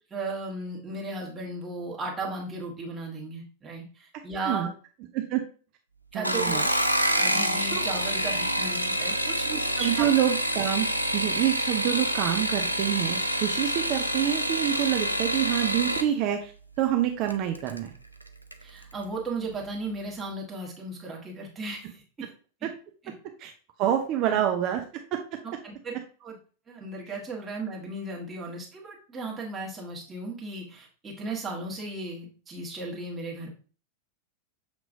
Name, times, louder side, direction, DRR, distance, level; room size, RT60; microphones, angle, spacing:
voice 1, 0.1-4.7 6.1-6.7 7.2-9.5 9.7-10.1 18.6-22.3 24.2-24.4 25.4-25.9 26.2-26.3 26.7-33.5, right 2 dB, 20° right, -2 dB, 1.4 m, -35 dB
sound 1, 6.1-16.1 17.3-17.8 18.2-18.6 18.9-19.0, equal, 90° left, 0.4 m, -27 dB
voice 2, 6.1-6.7 7.7-7.8 9.5-16.5 16.8-17.9 22.6-22.7 23.4-23.5 23.8-25.4, right 11 dB, 40° right, 4 dB, 0.5 m, -27 dB
6.7 x 3.0 x 2.6 m, 0.38 s
figure-of-eight pair, 90°, 0 cm